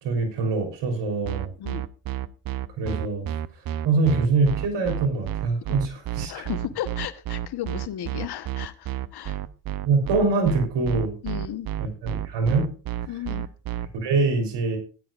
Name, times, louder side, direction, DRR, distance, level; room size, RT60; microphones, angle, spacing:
voice 1, 0.0-1.5 2.8-3.3 3.8-6.5 9.8-11.1 11.8-12.7 14.0-14.8, right 4 dB, 80° right, 4 dB, 3.6 m, -24 dB
sound 1, 1.2-13.9, right 12 dB, 55° right, 0.7 m, -30 dB
voice 2, 6.3-9.4 11.2-11.7 13.1-13.5, left 11 dB, 65° left, 13 dB, 1.1 m, -34 dB
16.5 x 10.0 x 2.4 m, 0.36 s
supercardioid pair, 65°, 42 cm